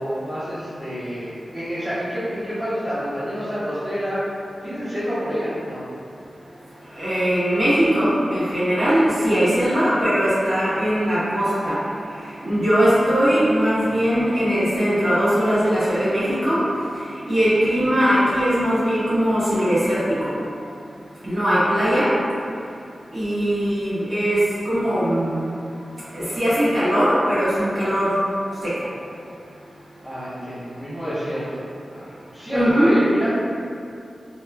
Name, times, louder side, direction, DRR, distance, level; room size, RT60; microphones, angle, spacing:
voice 1, 0.0-4.2 4.6-5.9 30.0-31.6 31.9-32.0 32.3-33.3, equal, 20° right, -16 dB, 1.0 m, -28 dB
voice 2, 7.0-11.8 12.4-16.6 17.3-20.3 21.2-22.1 23.1-24.4 24.6-25.5 26.1-28.2 28.6-28.7 32.5-32.9, equal, 45° right, -13 dB, 1.3 m, -20 dB
2.9 x 2.3 x 2.2 m, 2.5 s
wide cardioid pair, 75°, 0 cm